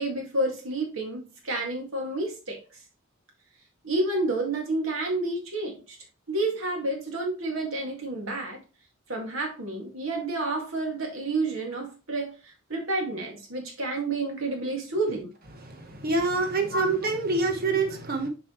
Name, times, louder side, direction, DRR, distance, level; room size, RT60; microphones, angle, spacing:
voice 1, 0.0-2.6 3.8-6.0 6.3-8.6 9.1-15.3 16.7-17.1, right 2 dB, 90° right, 2.1 m, -30 dB
voice 2, 15.6-18.3, right 3 dB, 50° right, 1.1 m, -26 dB
6.8 x 4.9 x 3.1 m
head